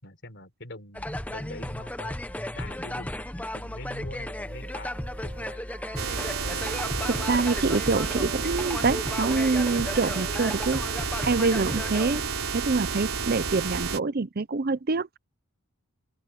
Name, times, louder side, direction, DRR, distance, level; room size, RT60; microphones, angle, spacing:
voice 1, 0.0-2.2 2.5-5.6, left 2 dB, 55° left, 4.4 m, -43 dB
sound 1, 0.9-12.2, left 1 dB, 5° left, 0.9 m, -35 dB
sound 2, 4.3-9.0, right 2 dB, 20° right, 5.0 m, -49 dB
sound 3, 6.0-14.0, right 5 dB, 85° right, 3.7 m, -31 dB
voice 2, 7.1-10.8 11.2-12.3 12.5-15.2, right 3 dB, 45° right, 0.6 m, -26 dB
open air
head